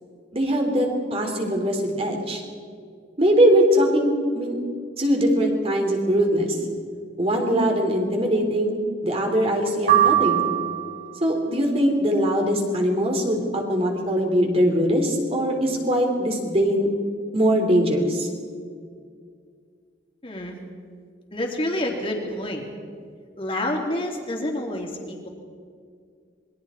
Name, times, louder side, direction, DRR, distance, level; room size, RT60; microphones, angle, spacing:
voice 1, 0.3-2.4 3.2-4.6 5.0-6.6 7.2-10.5 11.2-16.9 17.3-18.3, equal, 35° right, 2 dB, 3.5 m, -21 dB
sound 1, 9.9-11.2, right 13 dB, 55° right, 5.7 m, -20 dB
voice 2, 20.2-20.6 21.3-22.6 23.4-25.3, left 1 dB, 30° left, 0 dB, 3.4 m, -28 dB
27.0 x 22.0 x 4.5 m, 2.2 s
head